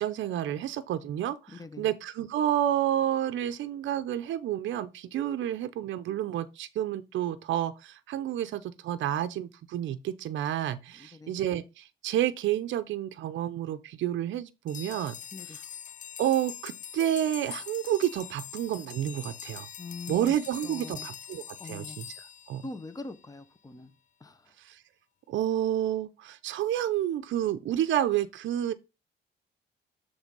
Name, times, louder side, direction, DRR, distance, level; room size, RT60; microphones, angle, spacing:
voice 1, 0.0-15.1 16.2-19.7 20.1-22.1 22.5-22.6 24.6-24.8 25.3-28.7, right 11 dB, 70° right, 0.6 m, -30 dB
voice 2, 1.5-1.9 11.0-11.3 15.3-15.6 19.8-20.3 20.6-21.1 21.6-22.0 22.6-23.9 24.2-24.5, left 3 dB, 15° left, 0.9 m, -43 dB
sound 1, 14.7-23.2, left 8 dB, 40° left, 0.4 m, -43 dB
7.1 x 3.4 x 5.3 m
cardioid pair, 90°, 20 cm